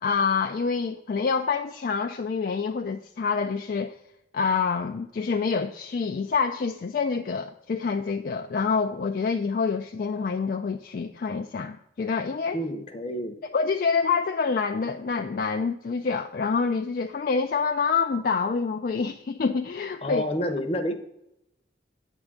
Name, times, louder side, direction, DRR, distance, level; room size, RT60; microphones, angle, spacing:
voice 1, 0.0-3.9 4.3-12.6 13.5-20.2, left 5 dB, 50° left, 4 dB, 0.3 m, -27 dB
voice 2, 12.5-13.4 20.0-20.9, equal, 30° left, 5 dB, 0.7 m, -29 dB
9.0 x 3.6 x 6.4 m, 0.82 s
head